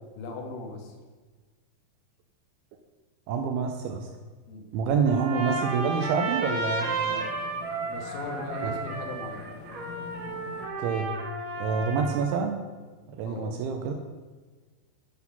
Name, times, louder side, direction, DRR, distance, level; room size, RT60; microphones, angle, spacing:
voice 1, 0.2-0.9 4.5-4.7 7.0-7.3 7.9-9.5 13.2-13.6, left 2 dB, 60° left, 1 dB, 2.6 m, -38 dB
voice 2, 3.3-4.1 4.7-6.9 8.6-8.7 10.8-11.1 11.6-12.6 13.2-13.9, right 6 dB, 80° right, 4 dB, 3.0 m, -27 dB
Trumpet, 5.0-12.4, right 3 dB, 60° right, 2.5 m, -33 dB
sound 1, 5.6-10.7, left 5 dB, 85° left, 2.2 m, -46 dB
10.5 x 6.2 x 5.6 m, 1.4 s
omnidirectional pair, 5.6 m